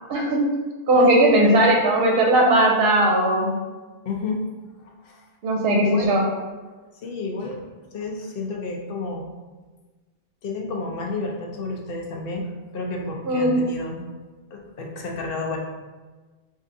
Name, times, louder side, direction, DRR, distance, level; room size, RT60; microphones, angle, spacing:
voice 1, 0.1-0.5 0.9-3.5 5.4-6.3 13.2-13.6, right 1 dB, 65° right, 0 dB, 0.8 m, -18 dB
voice 2, 0.9-1.6 4.0-4.4 5.0-5.2 5.8-6.1 7.0-7.6 7.9-9.3 10.4-14.0 14.5-15.6, left 3 dB, 60° left, 1 dB, 0.7 m, -30 dB
4.4 x 2.6 x 2.6 m, 1.3 s
omnidirectional pair, 1.1 m